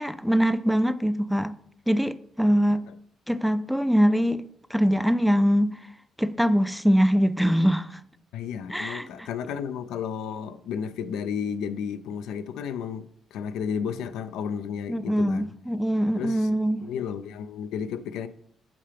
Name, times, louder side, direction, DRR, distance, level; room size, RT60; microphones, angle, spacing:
voice 1, 0.0-1.6 1.9-2.8 3.3-4.5 4.7-5.8 6.2-8.0 8.7-9.1 14.9-16.9, equal, ahead, 0.3 m, -23 dB
voice 2, 8.3-15.5 16.2-18.3, left 7 dB, 90° left, 0.3 m, -33 dB
8.6 x 3.8 x 3.3 m
cardioid pair, 90°, 0 cm